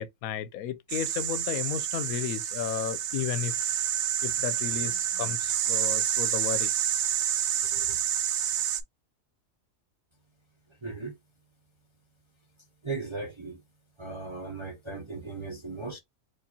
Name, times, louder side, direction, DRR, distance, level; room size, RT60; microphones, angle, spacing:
voice 1, 0.0-3.9 4.2-6.7 7.7-8.0, left 10 dB, 90° left, 1.0 m, -34 dB
sound 1, 0.9-8.8, right 10 dB, 85° right, 1.0 m, -28 dB
voice 2, 10.8-11.2 12.8-13.6 14.0-16.0, right 3 dB, 35° right, 0.4 m, -37 dB
4.6 x 2.5 x 2.8 m
omnidirectional pair, 1.4 m